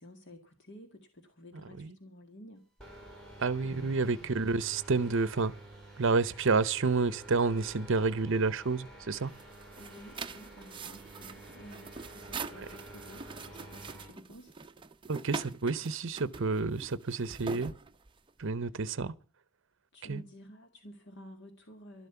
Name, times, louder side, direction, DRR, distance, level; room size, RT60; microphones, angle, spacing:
voice 1, 0.0-2.7 3.6-4.6 9.8-14.5 18.6-18.8 19.9-22.1, equal, 55° left, 2.0 m, -52 dB
sound 1, 2.8-14.2, right 1 dB, 5° left, 5.0 m, -50 dB
voice 2, 3.4-5.5 6.0-9.3 15.1-17.7 18.4-19.1 20.1-20.2, right 4 dB, 60° right, 0.7 m, -29 dB
sound 2, 9.3-18.4, right 5 dB, 25° right, 0.6 m, -44 dB
12.5 x 12.0 x 6.9 m
head